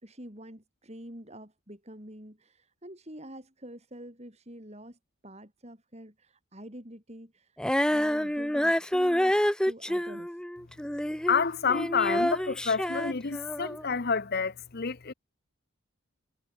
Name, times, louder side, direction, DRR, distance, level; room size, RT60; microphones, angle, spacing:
voice 1, 0.0-10.4, right 1 dB, 30° right, 6.0 m, -47 dB
Female singing, 7.6-13.8, equal, 5° left, 0.6 m, -28 dB
voice 2, 11.3-15.1, left 5 dB, 45° left, 0.8 m, -28 dB
head